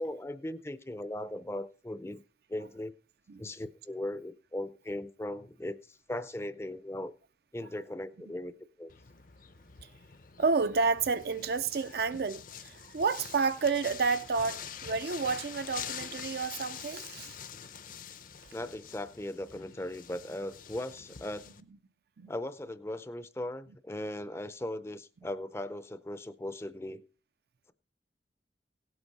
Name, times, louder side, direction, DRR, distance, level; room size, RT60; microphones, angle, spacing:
voice 1, 0.0-2.2 2.5-2.9 3.4-7.1 7.5-8.9 18.5-21.5 22.3-27.0, left 1 dB, 15° left, 0.5 m, -38 dB
sound 1, 8.9-21.6, left 8 dB, 50° left, 0.7 m, -46 dB
voice 2, 10.4-17.4 22.2-22.3, right 4 dB, 60° right, 0.5 m, -30 dB
17.0 x 8.0 x 4.1 m
head